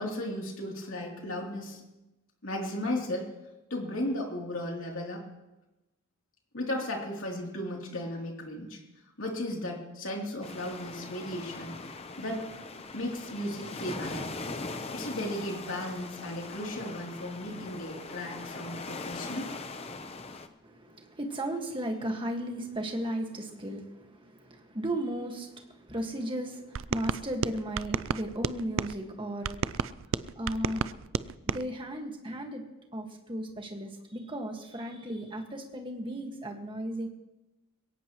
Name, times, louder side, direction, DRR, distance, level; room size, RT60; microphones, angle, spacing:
voice 1, 0.0-1.8 2.4-3.3 3.7-5.2 6.5-8.8 9.2-11.7 12.2-12.5 12.9-14.3 14.9-19.5, left 1 dB, 65° left, -1 dB, 3.2 m, -35 dB
sound 1, 10.4-20.5, left 3 dB, 25° left, 0.8 m, -41 dB
voice 2, 20.6-30.9 31.4-32.6 32.9-37.1, right 1 dB, 20° right, 2 dB, 1.7 m, -35 dB
sound 2, 26.8-28.9 29.4-31.6, right 6 dB, 60° right, 0.4 m, -32 dB
22.0 x 17.5 x 3.1 m, 1.0 s
head